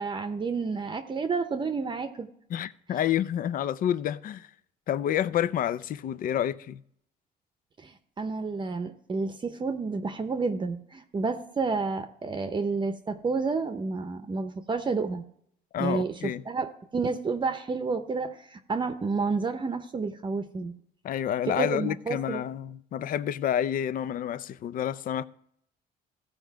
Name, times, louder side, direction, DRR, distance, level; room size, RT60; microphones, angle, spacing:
voice 1, 0.0-2.3 7.8-15.2 15.8-20.7 21.6-22.4, right 4 dB, 30° right, 0.8 m, -30 dB
voice 2, 2.5-4.5 4.9-6.8 15.7-16.4 21.0-25.3, left 10 dB, 55° left, 0.5 m, -29 dB
15.5 x 5.1 x 4.6 m
cardioid pair, 110°, 17 cm